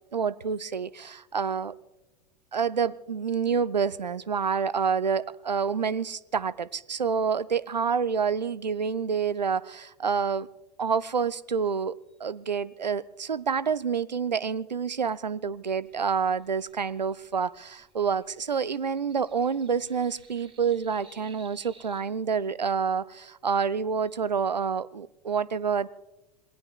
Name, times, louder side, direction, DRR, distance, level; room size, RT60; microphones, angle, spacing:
voice 1, 0.1-1.7 2.5-10.5 10.8-25.9, right 6 dB, 90° right, 0.5 m, -28 dB
sound 1, 15.8-22.0, right 4 dB, 25° right, 2.1 m, -57 dB
27.0 x 20.0 x 2.4 m
figure-of-eight pair, 85°, 21 cm